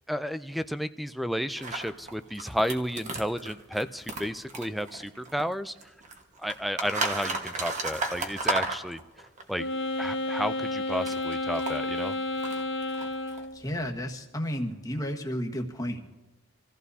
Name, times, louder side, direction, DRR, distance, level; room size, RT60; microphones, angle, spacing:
voice 1, 0.1-5.9 6.4-9.0 9.5-9.7 10.0-12.2, equal, ahead, 12 dB, 0.4 m, -32 dB
sound 1, 1.6-5.5 5.8-9.4 10.6-13.9, right 3 dB, 40° right, 1.4 m, -34 dB
Wind instrument woodwind instrument, 9.6-13.6, left 2 dB, 65° left, 1.0 m, -31 dB
voice 2, 13.5-16.2, equal, 20° left, 1 dB, 1.4 m, -32 dB
27.0 x 15.0 x 2.8 m, 1.1 s
head